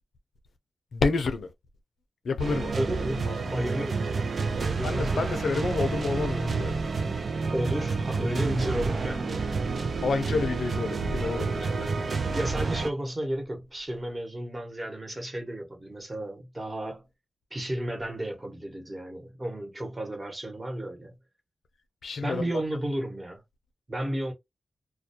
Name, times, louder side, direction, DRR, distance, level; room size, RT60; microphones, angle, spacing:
voice 1, 0.9-1.5 2.2-2.7 3.3-3.4 4.8-6.8 10.0-11.9 22.0-22.5, left 4 dB, 80° left, 0.5 m, -29 dB
sound 1, 2.4-12.9, right 4 dB, 65° right, 0.5 m, -29 dB
voice 2, 2.7-5.2 7.5-9.5 12.3-17.0 17.5-21.1 22.2-23.4 23.9-24.3, right 1 dB, 30° right, 1.0 m, -33 dB
2.2 x 2.2 x 2.7 m
cardioid pair, 45°, 0 cm